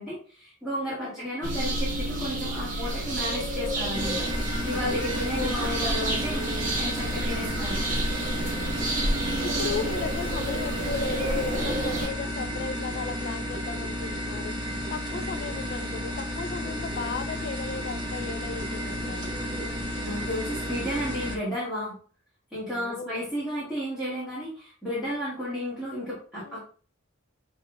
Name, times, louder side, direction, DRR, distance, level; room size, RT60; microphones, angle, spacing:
voice 1, 0.0-7.8 20.0-22.0 22.5-26.6, equal, ahead, -11 dB, 1.6 m, -33 dB
voice 2, 1.0-1.3 4.7-5.5 6.1-6.2 7.1-7.3 8.5-9.0 9.4-14.6 14.9-19.4 22.7-23.3 26.4-26.6, left 5 dB, 50° left, 10 dB, 0.3 m, -36 dB
sound 1, 1.4-12.1, right 1 dB, 40° right, 1.1 m, -30 dB
sound 2, 3.9-21.4, left 1 dB, 25° right, 0.8 m, -32 dB
sound 3, 4.8-9.4, right 3 dB, 75° right, 0.5 m, -40 dB
6.0 x 3.1 x 2.2 m, 0.42 s
head